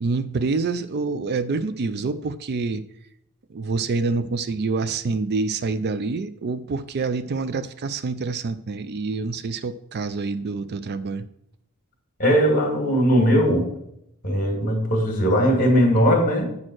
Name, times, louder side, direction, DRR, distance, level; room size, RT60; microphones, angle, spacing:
voice 1, 0.0-2.8 3.5-11.2, right 4 dB, 50° right, 13 dB, 0.4 m, -27 dB
voice 2, 12.2-13.7 14.2-16.4, equal, 40° left, 2 dB, 2.2 m, -19 dB
8.5 x 4.4 x 6.2 m, 0.78 s
head